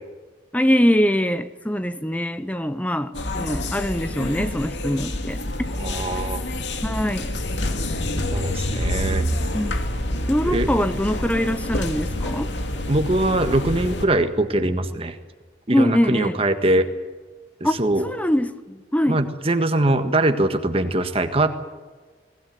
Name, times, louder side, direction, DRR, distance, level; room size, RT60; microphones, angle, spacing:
voice 1, 0.5-5.4 6.8-7.3 9.5-9.7 10.3-12.5 15.7-16.3 17.6-19.2, equal, 10° left, 0.7 m, -23 dB
sound 1, 3.1-14.1, left 1 dB, 75° left, 2.4 m, -27 dB
voice 2, 5.8-6.4 8.3-9.2 10.5-10.7 12.9-15.2 15.7-16.9 17.6-18.0 19.1-21.5, right 1 dB, 30° right, 1.6 m, -22 dB
22.5 x 17.0 x 9.3 m
head